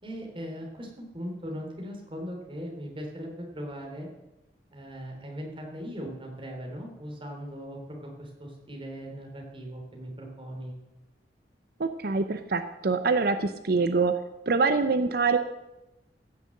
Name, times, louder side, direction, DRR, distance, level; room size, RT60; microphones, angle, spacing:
voice 1, 0.0-4.1 4.7-10.7, equal, 30° right, 1 dB, 3.3 m, -39 dB
voice 2, 11.8-14.1 14.5-15.4, right 4 dB, 60° right, 9 dB, 0.6 m, -25 dB
15.5 x 6.5 x 7.6 m, 0.98 s
head